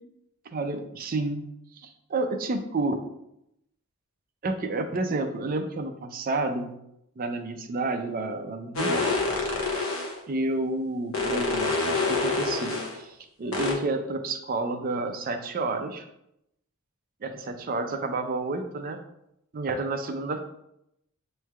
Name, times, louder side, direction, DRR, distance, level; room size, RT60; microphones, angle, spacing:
voice 1, 0.5-1.5 1.8-3.0 4.4-6.7 7.2-9.1 10.3-16.0 17.2-19.0 19.5-20.4, right 2 dB, 40° right, 6 dB, 0.4 m, -30 dB
sound 1, 8.8-10.2 11.1-13.0 13.5-13.7, left 3 dB, 65° left, 1.0 m, -26 dB
7.2 x 3.2 x 2.3 m, 0.81 s
head